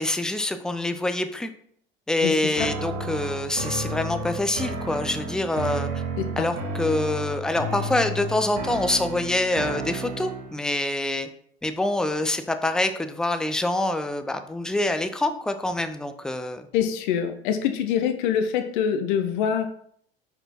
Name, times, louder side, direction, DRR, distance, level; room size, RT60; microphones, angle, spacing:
voice 1, 0.0-1.5 2.1-5.9 6.4-11.3 11.6-16.7, left 2 dB, ahead, 9 dB, 0.4 m, -26 dB
sound 1, 2.5-10.6, right 2 dB, 50° right, 1.3 m, -32 dB
voice 2, 16.7-19.7, left 8 dB, 55° left, 8 dB, 0.7 m, -24 dB
6.1 x 4.9 x 4.3 m, 0.65 s
figure-of-eight pair, 75°, 29 cm